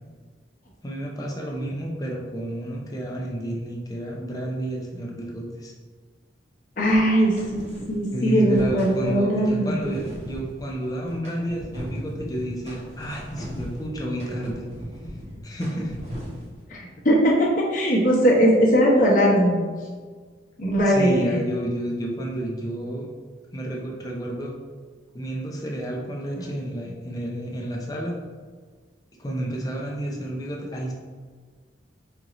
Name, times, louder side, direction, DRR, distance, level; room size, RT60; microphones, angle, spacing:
voice 1, 0.8-5.7 8.1-14.7 15.4-16.0 20.8-23.1 23.5-24.5 25.1-28.2 29.2-30.9, right 1 dB, 20° left, -1 dB, 0.5 m, -30 dB
voice 2, 6.8-9.8 16.7-19.6 20.6-21.1, equal, 45° left, -4 dB, 0.9 m, -20 dB
sound 1, 6.9-8.0 8.3-16.6, equal, 35° right, 0.9 m, -38 dB
4.5 x 2.5 x 2.9 m, 1.5 s
head